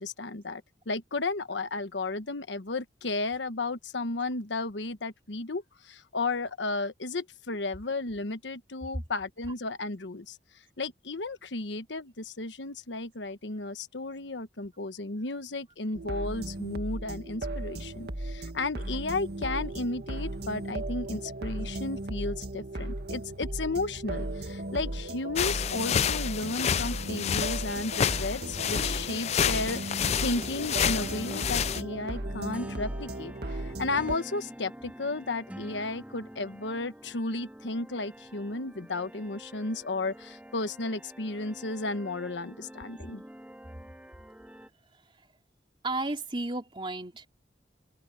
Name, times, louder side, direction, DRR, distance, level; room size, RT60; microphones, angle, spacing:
voice 1, 0.0-10.4 10.8-43.2, left 2 dB, 85° left, 1.2 m, -34 dB
sound 1, 15.9-34.2, right 1 dB, 65° right, 2.0 m, -36 dB
sound 2, 25.4-31.8, left 8 dB, 35° left, 0.3 m, -29 dB
sound 3, 30.1-44.7, equal, 10° right, 2.4 m, -47 dB
voice 2, 45.8-47.3, right 2 dB, 30° right, 3.0 m, -33 dB
open air
head